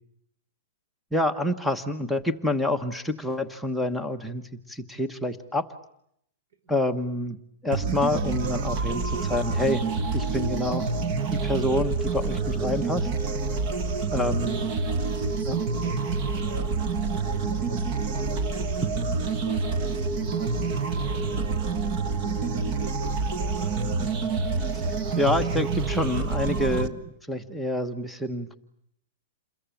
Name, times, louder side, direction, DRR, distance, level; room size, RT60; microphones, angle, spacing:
voice 1, 1.1-4.4 4.7-5.7 6.7-7.4 7.6-9.8 10.1-10.9 11.3-13.1 14.1-14.6 24.7-24.8 25.2-28.5, left 1 dB, ahead, 9 dB, 1.1 m, -27 dB
sound 1, 7.7-26.9, right 4 dB, 35° right, 1.5 m, -27 dB
voice 2, 13.8-14.8 15.2-23.8, right 4 dB, 80° right, 10 dB, 5.7 m, -43 dB
29.0 x 22.0 x 9.0 m, 0.72 s
supercardioid pair, 160°, 0 cm